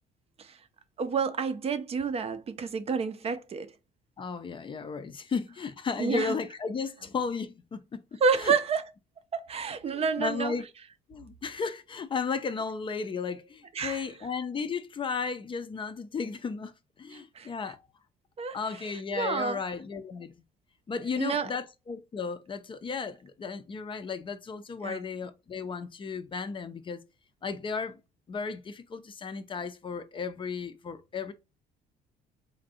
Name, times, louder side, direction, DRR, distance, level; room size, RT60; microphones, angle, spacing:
voice 1, 1.0-3.7 6.0-6.3 8.2-8.8 9.3-10.5 13.7-14.0 17.1-17.5 18.4-18.6 18.8-19.6 21.2-21.5 24.8-25.0, right 5 dB, 35° right, 0.5 m, -29 dB
voice 2, 4.2-8.5 9.9-10.6 11.1-17.8 18.5-20.3 20.9-27.0 27.4-28.0 28.3-31.3, left 5 dB, 30° left, 0.5 m, -34 dB
3.4 x 2.6 x 4.1 m
cardioid pair, 110°, 17 cm